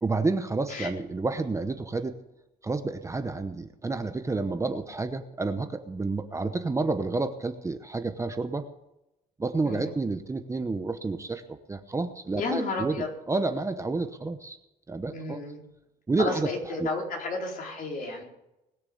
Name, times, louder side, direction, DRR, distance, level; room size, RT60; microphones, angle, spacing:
voice 1, 0.0-2.2 2.6-8.7 9.4-11.4 11.7-14.6 14.9-15.4 16.1-16.5 16.8-16.9, right 3 dB, 15° right, 9 dB, 0.9 m, -29 dB
voice 2, 12.3-13.1 15.1-15.6 16.2-18.2, left 3 dB, 55° left, 0 dB, 4.3 m, -32 dB
20.5 x 6.9 x 7.1 m, 0.91 s
cardioid pair, 110°, 17 cm